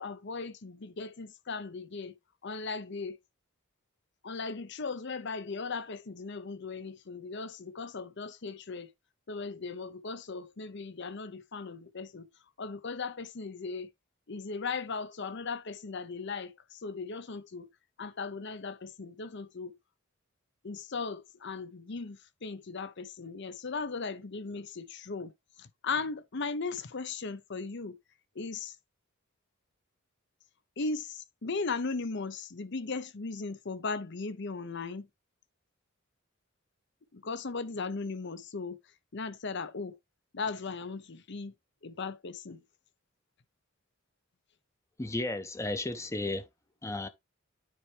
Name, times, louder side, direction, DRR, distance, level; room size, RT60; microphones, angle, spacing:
voice 1, 0.0-2.1 2.4-3.2 4.2-8.9 9.3-12.3 12.6-13.9 14.3-17.7 18.0-19.8 20.6-25.3 25.6-28.0 28.3-28.8 30.8-35.1 37.1-38.8 39.1-40.0 40.3-41.5 41.8-42.6, left 4 dB, 55° left, 0.8 m, -37 dB
voice 2, 45.0-46.5 46.8-47.1, left 2 dB, 15° left, 0.6 m, -33 dB
9.4 x 4.5 x 3.2 m
head